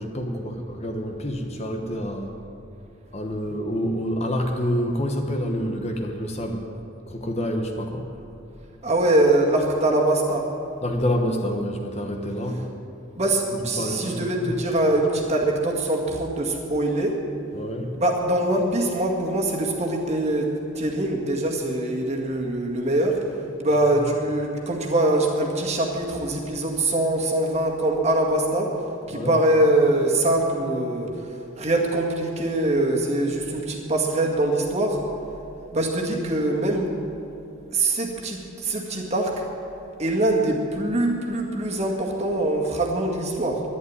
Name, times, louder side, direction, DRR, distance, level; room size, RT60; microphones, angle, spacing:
voice 1, 0.0-2.3 3.1-6.6 7.1-8.1 10.8-12.7 13.8-14.5 17.5-17.9 29.1-29.3, equal, 30° left, 3 dB, 1.1 m, -27 dB
voice 2, 8.8-10.5 13.2-17.2 18.0-23.2 23.6-28.7 29.1-31.1 31.6-35.0 35.7-36.9 37.7-39.4 40.0-43.6, right 1 dB, 30° right, -1 dB, 2.0 m, -23 dB
11.5 x 11.0 x 9.6 m, 2.8 s
head